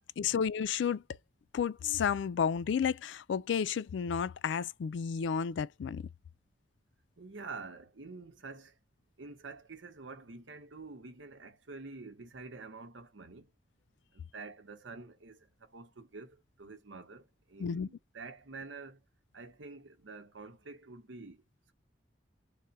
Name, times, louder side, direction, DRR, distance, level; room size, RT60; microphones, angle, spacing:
voice 1, 0.2-1.0 1.5-6.1 17.6-17.9, left 7 dB, 80° left, 0.3 m, -32 dB
voice 2, 7.2-8.8 9.2-13.5 14.1-19.0 19.3-21.4, right 3 dB, 90° right, 0.9 m, -48 dB
3.4 x 2.2 x 3.9 m
head